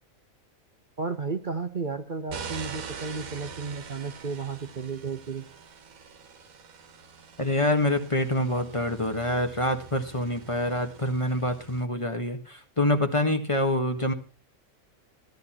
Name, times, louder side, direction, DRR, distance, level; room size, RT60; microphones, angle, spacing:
voice 1, 1.0-5.4, right 4 dB, 40° right, 7 dB, 1.1 m, -33 dB
sound 1, 2.3-11.9, right 6 dB, 85° right, 1.7 m, -43 dB
voice 2, 7.4-14.1, left 1 dB, 25° left, 6 dB, 1.5 m, -26 dB
16.0 x 12.0 x 4.3 m, 0.34 s
omnidirectional pair, 1.4 m